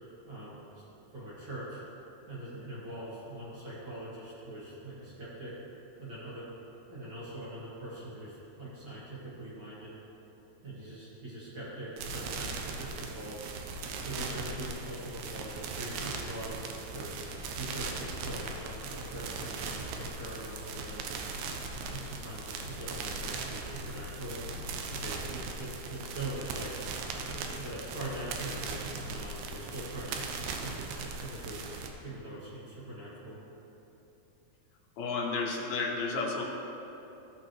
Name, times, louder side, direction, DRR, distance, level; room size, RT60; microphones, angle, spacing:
voice 1, 0.2-1.8 2.3-5.5 6.0-10.0 10.6-13.5 14.0-17.1 17.5-21.3 21.9-24.4 24.9-26.7 27.3-31.6 32.0-33.4, right 1 dB, 35° right, -8 dB, 2.4 m, -42 dB
sound 1, 12.0-31.9, right 3 dB, 85° right, 2.6 m, -39 dB
voice 2, 35.0-36.4, left 4 dB, 75° left, -1 dB, 2.7 m, -32 dB
16.0 x 6.4 x 3.1 m, 3.0 s
omnidirectional pair, 4.5 m